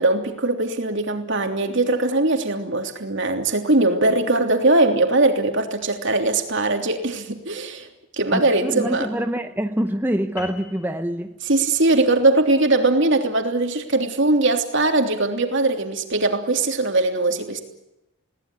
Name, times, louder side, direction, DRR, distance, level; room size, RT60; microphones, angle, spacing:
voice 1, 0.0-7.9 8.1-9.1 11.5-17.6, right 2 dB, 55° right, 5 dB, 3.2 m, -20 dB
voice 2, 8.3-11.4, equal, 10° right, 6 dB, 0.8 m, -25 dB
sound 1, 10.4-15.1, left 4 dB, 40° left, 5.4 m, -45 dB
21.5 x 19.0 x 9.8 m, 0.90 s
head